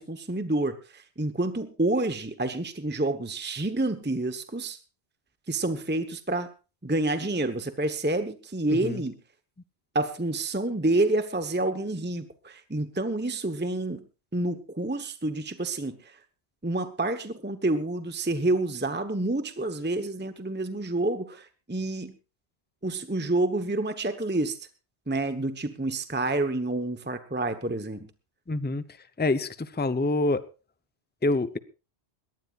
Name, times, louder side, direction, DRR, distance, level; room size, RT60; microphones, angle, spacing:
voice 1, 0.0-4.8 5.5-6.5 6.8-9.2 9.9-14.0 14.3-16.2 16.6-22.1 22.8-24.6 25.1-28.1, right 2 dB, 10° right, 9 dB, 1.0 m, -28 dB
voice 2, 8.7-9.0 28.5-28.8 29.2-30.4 31.2-31.6, left 2 dB, 10° left, 12 dB, 0.6 m, -26 dB
22.0 x 18.5 x 2.5 m, 0.32 s
omnidirectional pair, 1.1 m